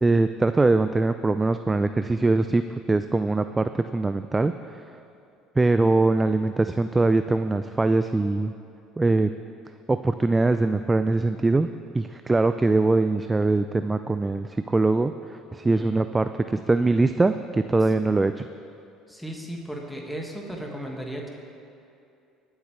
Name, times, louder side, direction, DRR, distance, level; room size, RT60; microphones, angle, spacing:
voice 1, 0.0-4.8 5.6-8.5 9.0-9.3 9.9-11.7 11.9-18.5, right 3 dB, 20° right, 10 dB, 0.4 m, -22 dB
voice 2, 15.6-16.0 17.8-17.9 19.1-21.3, right 1 dB, 5° left, -1 dB, 1.9 m, -35 dB
22.0 x 8.1 x 3.3 m, 2.6 s
hypercardioid pair, 70°, 0 cm